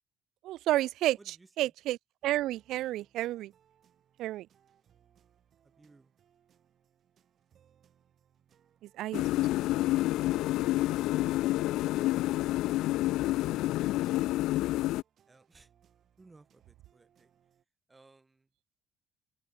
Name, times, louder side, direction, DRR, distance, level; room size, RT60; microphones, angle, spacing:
voice 1, 0.4-1.2 1.6-3.5 4.2-4.5 9.0-9.5, right 15 dB, 80° right, 0.5 m, -30 dB
voice 2, 1.2-1.7 2.7-3.1 5.6-6.1 15.3-15.7 16.2-17.3 17.9-18.5, right 3 dB, 15° right, 5.8 m, -61 dB
sound 1, 2.2-17.6, right 9 dB, 50° right, 7.3 m, -68 dB
sound 2, 9.1-15.0, left 16 dB, 85° left, 0.4 m, -28 dB
Wind instrument woodwind instrument, 9.9-14.2, left 9 dB, 50° left, 3.3 m, -56 dB
cardioid pair, 135°, 0 cm